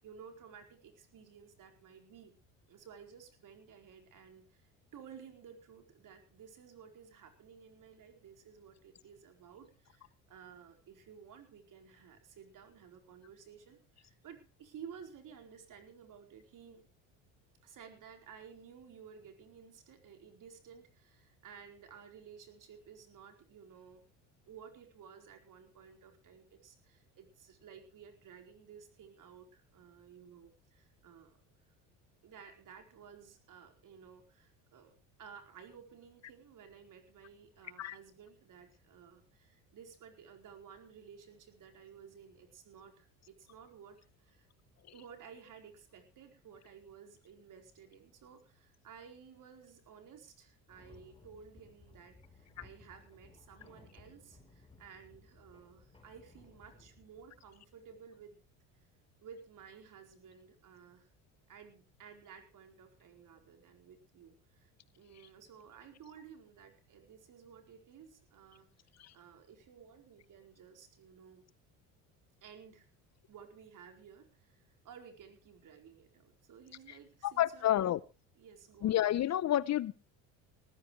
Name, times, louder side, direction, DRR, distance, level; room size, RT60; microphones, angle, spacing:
voice 1, 0.0-2.3 2.7-16.8 17.6-24.0 24.5-31.4 31.6-31.7 32.2-34.9 35.2-44.5 44.9-58.4 58.7-58.9 59.2-61.1 61.5-68.7 69.1-71.4 72.4-72.9 73.3-77.9 78.4-79.0, right 7 dB, 55° right, 4.5 m, -55 dB
sound 1, 50.7-58.1, left 3 dB, 15° left, 4.9 m, -60 dB
voice 2, 77.2-78.0 78.8-79.9, left 12 dB, 45° left, 0.7 m, -29 dB
19.0 x 14.5 x 3.2 m
supercardioid pair, 85°, 38 cm